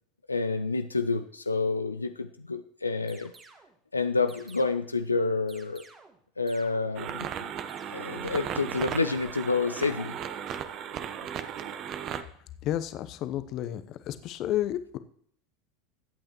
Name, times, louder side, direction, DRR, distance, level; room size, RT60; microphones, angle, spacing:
voice 1, 0.3-3.3 3.9-5.8 6.4-7.5 7.9-10.2, left 4 dB, 90° left, 9 dB, 0.5 m, -29 dB
sound 1, 3.1-3.8 4.3-5.0 5.5-6.2 6.5-7.1 7.7-8.4 8.7-9.4, right 4 dB, 25° right, 1.8 m, -53 dB
sound 2, 6.9-12.2, right 8 dB, 40° right, 0.9 m, -36 dB
voice 2, 12.6-15.0, left 12 dB, 45° left, 11 dB, 0.9 m, -31 dB
21.0 x 8.7 x 3.0 m, 0.64 s
figure-of-eight pair, 80°, 0 cm